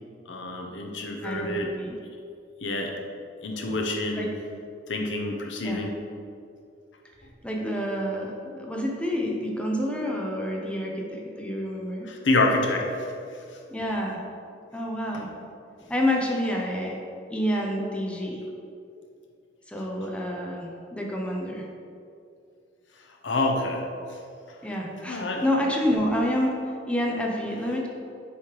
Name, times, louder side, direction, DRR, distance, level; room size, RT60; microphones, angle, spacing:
voice 1, 0.3-1.7 2.6-2.9 3.4-4.3 4.9-5.9 12.1-12.9 15.1-15.2 23.2-23.8 25.1-25.4, left 2 dB, 80° left, 2 dB, 0.8 m, -27 dB
voice 2, 1.2-2.0 4.2-4.3 5.6-5.8 7.4-12.1 13.7-14.2 14.7-15.3 15.9-18.4 19.7-21.7 24.6-26.6 26.9-27.9, equal, 5° left, -1 dB, 0.6 m, -28 dB
6.9 x 3.2 x 4.8 m, 2.5 s
head